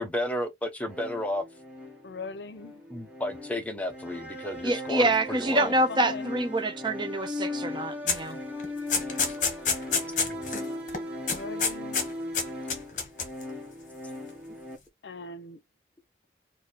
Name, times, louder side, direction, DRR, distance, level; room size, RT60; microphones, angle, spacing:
voice 1, 0.0-1.4 2.9-5.7 9.2-9.3 10.2-10.4, left 1 dB, 10° left, 0.7 m, -32 dB
sound 1, 0.8-14.8, left 1 dB, 10° right, 1.0 m, -38 dB
voice 2, 2.0-2.7 5.5-6.3 11.3-12.2 15.0-15.6, left 3 dB, 75° left, 0.6 m, -40 dB
voice 3, 4.6-8.4, right 2 dB, 25° right, 0.5 m, -26 dB
sound 2, 8.1-8.3 8.6-10.6 10.9-11.0 11.3-12.1 12.3-13.4, left 5 dB, 45° left, 1.1 m, -28 dB
3.1 x 2.7 x 4.0 m
head